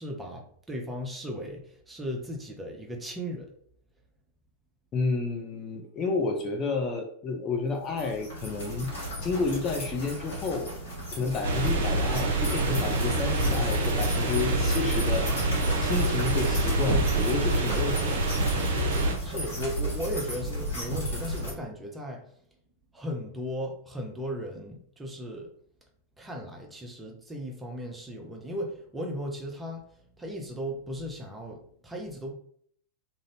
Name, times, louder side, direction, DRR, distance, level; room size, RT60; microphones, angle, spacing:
voice 1, 0.0-3.5 19.2-22.2 22.9-25.5 26.2-29.8 30.2-32.3, equal, 10° right, 1 dB, 0.6 m, -36 dB
voice 2, 4.9-8.9 9.2-10.7 11.1-15.3 15.8-18.2, left 4 dB, 30° left, 3 dB, 0.5 m, -30 dB
sound 1, 7.8-21.5, equal, 60° left, 1.4 m, -35 dB
sound 2, 11.4-19.1, right 2 dB, 60° right, 0.6 m, -26 dB
2.6 x 2.5 x 3.3 m, 0.63 s
figure-of-eight pair, 90°, 0 cm